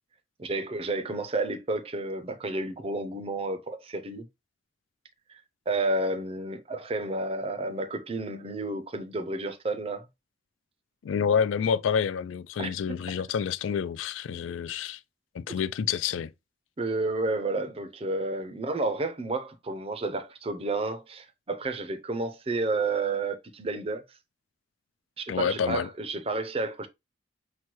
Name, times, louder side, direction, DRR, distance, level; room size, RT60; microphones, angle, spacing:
voice 1, 0.4-4.2 5.3-5.4 5.7-10.1 12.6-13.0 16.8-24.0 25.2-26.9, right 2 dB, 30° right, 0.5 m, -31 dB
voice 2, 11.0-15.0 15.3-16.3 25.3-25.9, left 7 dB, 85° left, 0.3 m, -28 dB
6.0 x 2.2 x 3.0 m
head